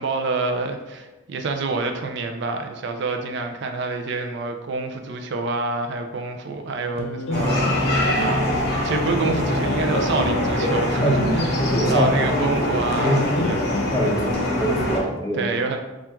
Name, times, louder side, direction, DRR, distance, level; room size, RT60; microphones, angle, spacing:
voice 1, 0.0-13.6 14.0-14.3 15.3-15.8, right 3 dB, 65° right, 5 dB, 0.4 m, -27 dB
sound 1, 7.0-15.1, left 3 dB, 85° left, 0.6 m, -30 dB
sound 2, 7.3-15.0, equal, 60° left, 0.9 m, -23 dB
voice 2, 11.0-12.1 13.0-13.5 13.9-15.4, equal, 20° left, -1 dB, 0.6 m, -24 dB
4.3 x 2.4 x 3.4 m, 1.1 s
head